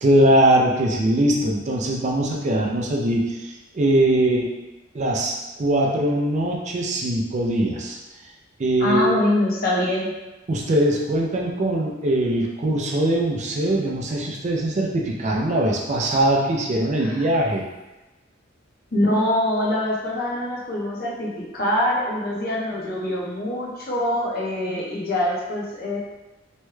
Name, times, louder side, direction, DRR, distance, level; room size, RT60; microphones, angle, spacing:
voice 1, 0.0-3.4 3.7-4.5 4.9-8.0 8.6-9.2 10.5-17.6, right 1 dB, 40° right, -2 dB, 0.4 m, -21 dB
voice 2, 8.8-10.1 16.9-17.2 18.9-26.0, left 1 dB, 50° left, -4 dB, 0.8 m, -24 dB
3.1 x 2.2 x 3.1 m, 1.1 s
head